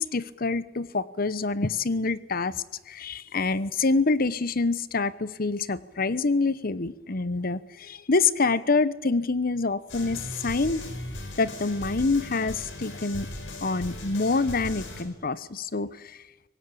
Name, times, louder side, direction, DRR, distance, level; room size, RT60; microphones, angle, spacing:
voice 1, 0.0-2.5 2.9-10.8 11.4-13.3 13.6-16.2, left 3 dB, 50° left, 16 dB, 1.0 m, -26 dB
sound 1, 9.9-15.0, left 1 dB, 75° left, 4.5 m, -38 dB
23.5 x 19.5 x 8.6 m, 1.1 s
head